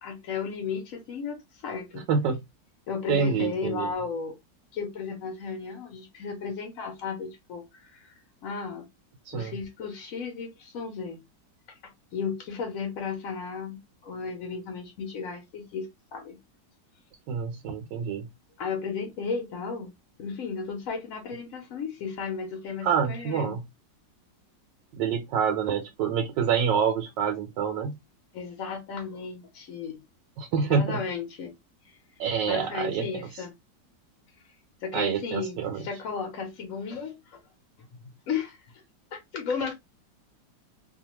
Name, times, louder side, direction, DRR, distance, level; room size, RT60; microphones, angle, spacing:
voice 1, 0.0-1.4 1.6-2.1 2.9-4.3 4.7-8.1 8.4-8.9 9.3-11.2 11.8-16.4 18.6-19.9 20.2-23.5 28.3-30.0 30.6-31.6 31.8-32.0 32.5-33.5 34.8-37.4 38.3-38.8 39.1-39.7, left 5 dB, 60° left, 0.9 m, -34 dB
voice 2, 3.1-3.9 9.3-9.5 17.3-18.3 22.8-23.6 25.0-27.9 30.4-31.0 32.2-33.0 34.9-35.8, right 7 dB, 90° right, 1.3 m, -27 dB
2.7 x 2.3 x 2.9 m
omnidirectional pair, 1.9 m